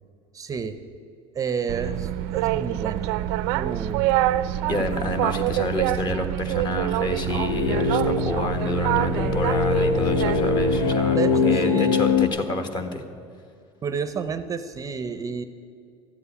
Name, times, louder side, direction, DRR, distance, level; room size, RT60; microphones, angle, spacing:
voice 1, 0.3-0.8 1.3-3.2 3.5-4.1 11.1-12.1 13.8-15.5, right 6 dB, 25° right, 10 dB, 0.6 m, -30 dB
Boat Water vehicle, 1.7-10.9, right 13 dB, 85° right, 0.5 m, -26 dB
voice 2, 4.7-13.0, left 2 dB, 35° left, 6 dB, 1.5 m, -28 dB
sound 1, 6.9-12.3, left 4 dB, 90° left, 1.3 m, -23 dB
14.0 x 8.1 x 9.8 m, 2.4 s
cardioid pair, 140°, 13 cm